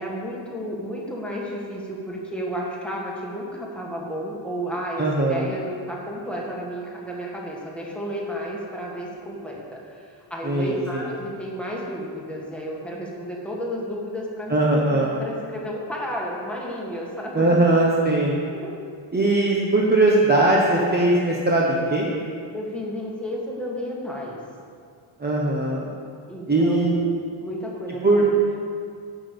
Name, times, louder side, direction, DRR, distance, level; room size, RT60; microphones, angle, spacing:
voice 1, 0.0-14.6 14.9-17.5 18.5-18.7 22.5-24.4 26.3-27.1 27.4-28.3, equal, ahead, -4 dB, 1.8 m, -32 dB
voice 2, 5.0-5.5 10.4-11.0 14.5-15.2 17.3-18.4 19.1-22.1 25.2-25.9 26.5-26.9 28.0-28.2, right 2 dB, 20° right, -4 dB, 1.1 m, -20 dB
12.0 x 6.1 x 8.5 m, 2.3 s
wide cardioid pair, 175°, 50 cm